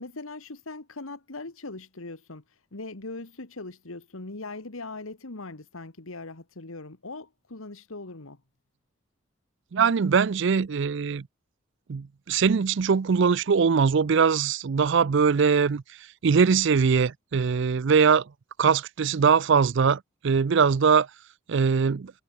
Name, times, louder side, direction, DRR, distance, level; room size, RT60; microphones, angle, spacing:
voice 1, 0.0-2.4 2.7-8.4, left 2 dB, 85° left, 1.8 m, -40 dB
voice 2, 9.7-11.3 11.9-15.8 16.2-18.3 18.6-21.1 21.5-22.1, right 6 dB, 60° right, 0.5 m, -22 dB
head